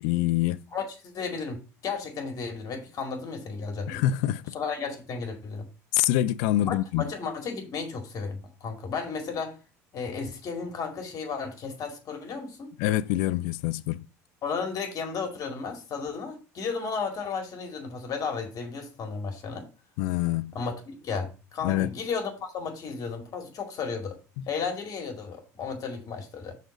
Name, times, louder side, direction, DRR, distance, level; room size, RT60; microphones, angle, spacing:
voice 1, 0.0-0.6 3.9-4.5 5.9-7.0 12.8-14.1 20.0-20.5 21.6-21.9 24.4-24.5, left 14 dB, 70° left, 0.4 m, -25 dB
voice 2, 0.7-4.0 4.5-5.7 6.7-9.6 9.9-12.7 14.4-19.7 20.5-24.2 24.5-26.5, left 5 dB, 50° left, 2.3 m, -34 dB
6.4 x 4.1 x 6.0 m
hypercardioid pair, 70°, 8 cm